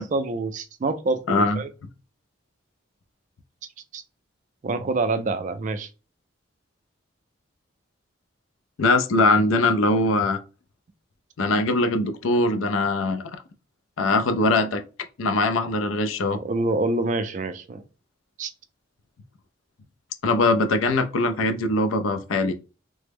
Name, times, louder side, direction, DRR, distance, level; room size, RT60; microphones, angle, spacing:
voice 1, 0.0-1.7 3.9-4.0 4.6-5.9 16.3-17.8 18.4-18.5, right 3 dB, 40° right, 0.3 m, -26 dB
voice 2, 1.3-1.6 8.8-10.4 11.4-13.2 14.0-14.8 15.2-16.4 20.2-22.5, left 2 dB, 85° left, 0.5 m, -21 dB
3.3 x 2.0 x 3.3 m
head